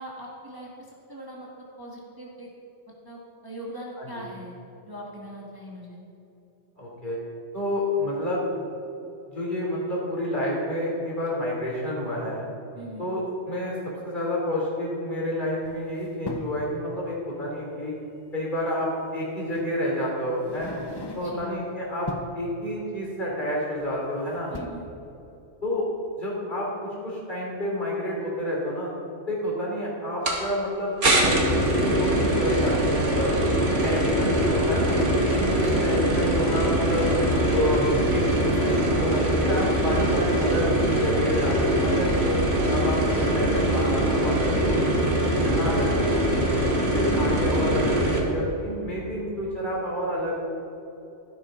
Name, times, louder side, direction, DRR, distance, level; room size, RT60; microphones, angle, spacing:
voice 1, 0.0-1.5 1.8-2.5 3.0-4.5 4.9-6.0 12.7-13.1 21.1-21.5 24.5-24.9 35.6-36.2 45.4-45.8, equal, 20° right, -4 dB, 1.5 m, -40 dB
voice 2, 6.8-7.2 7.5-8.5 9.3-12.5 13.0-13.8 14.0-17.9 18.3-20.7 21.1-22.1 22.4-24.5 25.6-25.9 26.2-26.7 27.0-28.9 29.3-33.3 33.8-37.1 37.5-40.7 41.0-42.5 42.7-45.1 45.4-46.6 46.9-50.3, left 1 dB, 40° left, -5 dB, 3.4 m, -29 dB
sound 1, 15.6-16.7 18.3-18.4 19.5-19.8 20.3-21.6 21.9-22.4 23.8-24.1 24.4-24.7, left 2 dB, 25° left, 0.6 m, -39 dB
sound 2, 30.3-30.4 31.0-48.2, right 1 dB, 80° right, 2.2 m, -23 dB
14.0 x 12.5 x 3.8 m, 2.9 s
omnidirectional pair, 1.2 m